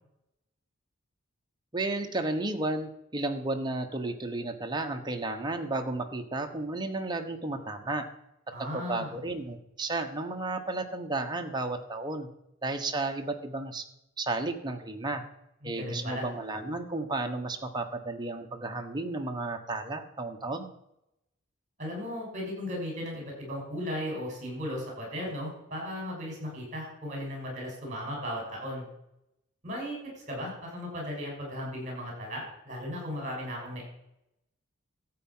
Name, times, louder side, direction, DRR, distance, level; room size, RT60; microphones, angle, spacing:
voice 1, 1.7-8.1 8.6-12.3 12.6-13.8 14.2-15.2 15.6-20.7, right 2 dB, 20° right, 4 dB, 1.3 m, -33 dB
voice 2, 8.5-9.1 15.6-16.3 21.8-28.9 29.6-33.8, equal, 35° right, 0 dB, 6.1 m, -36 dB
13.5 x 8.3 x 5.8 m, 0.83 s
head